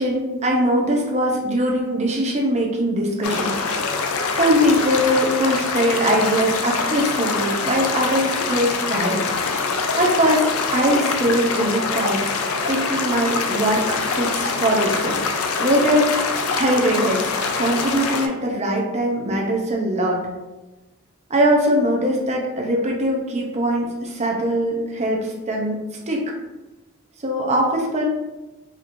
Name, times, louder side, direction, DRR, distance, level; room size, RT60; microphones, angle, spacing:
voice 1, 0.0-4.0 4.3-9.2 10.0-15.2 15.6-17.3 17.6-20.2 21.3-25.8 26.1-26.2 27.2-28.0, equal, 30° right, -1 dB, 0.6 m, -21 dB
sound 1, 3.2-18.3, left 4 dB, 75° left, 0.4 m, -24 dB
4.2 x 2.9 x 2.6 m, 1.1 s
head